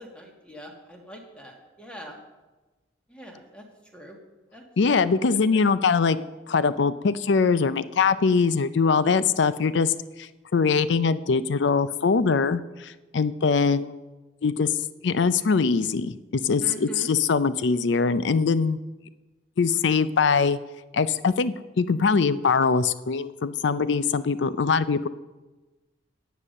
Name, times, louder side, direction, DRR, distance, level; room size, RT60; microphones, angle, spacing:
voice 1, 0.0-2.2 3.1-3.6 3.9-4.2 4.5-4.6 4.9-5.6 16.6-17.1, right 1 dB, 5° left, 1 dB, 1.7 m, -42 dB
voice 2, 4.8-6.2 6.5-9.9 10.2-13.9 14.4-14.7 15.0-18.8 19.6-20.6 20.9-25.1, left 5 dB, 70° left, 15 dB, 0.5 m, -22 dB
9.8 x 8.3 x 6.5 m, 1.2 s
head